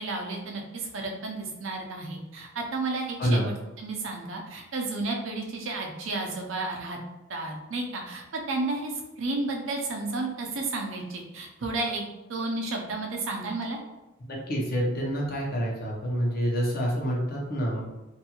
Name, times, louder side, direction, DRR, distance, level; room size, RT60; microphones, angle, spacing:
voice 1, 0.0-7.0 7.3-12.0 12.3-13.8, right 2 dB, 75° right, 1 dB, 0.5 m, -32 dB
voice 2, 14.3-17.8, equal, 50° left, -3 dB, 0.8 m, -27 dB
2.6 x 2.3 x 2.9 m, 1.0 s
head